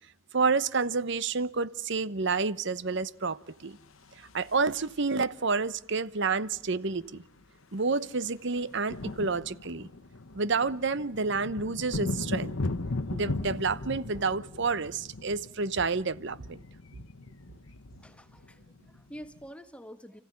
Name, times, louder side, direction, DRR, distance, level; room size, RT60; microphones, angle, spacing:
voice 1, 0.3-3.8 4.2-7.2 7.7-9.9 10.3-12.6 13.1-16.6, right 4 dB, 60° right, 0.9 m, -29 dB
sound 1, 3.7-5.3 6.6-6.7 6.9-7.1 7.4-19.5, left 2 dB, 85° left, 1.1 m, -38 dB
voice 2, 18.0-20.2, equal, 5° left, 1.5 m, -47 dB
29.5 x 15.5 x 9.6 m
head